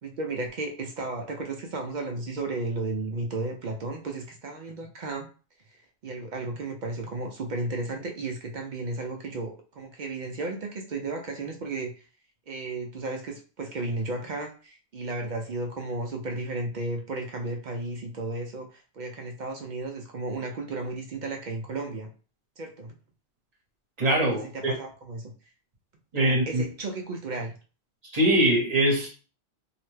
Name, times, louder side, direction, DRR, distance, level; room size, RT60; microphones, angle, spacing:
voice 1, 0.0-5.3 6.0-11.9 12.5-22.1 22.6-22.9 24.3-25.3 26.2-27.5, right 2 dB, 55° right, 2 dB, 0.5 m, -34 dB
voice 2, 24.0-24.7 26.1-26.6 28.1-29.1, right 1 dB, 40° right, -2 dB, 0.9 m, -22 dB
2.8 x 2.1 x 3.1 m, 0.37 s
omnidirectional pair, 1.1 m